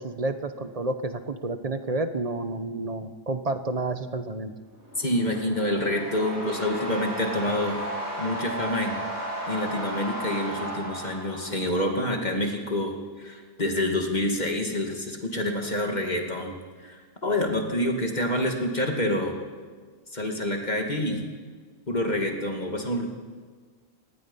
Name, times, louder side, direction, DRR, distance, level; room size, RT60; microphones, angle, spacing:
voice 1, 0.0-4.5, right 2 dB, 35° right, 9 dB, 1.1 m, -30 dB
sound 1, 4.8-11.9, right 1 dB, 15° right, 5.6 m, -34 dB
voice 2, 5.0-7.8 8.2-9.0 9.5-16.6 16.8-19.3 20.1-21.2 21.9-23.1, left 1 dB, 40° left, 2 dB, 2.6 m, -27 dB
25.0 x 19.0 x 5.6 m, 1.5 s
omnidirectional pair, 1.1 m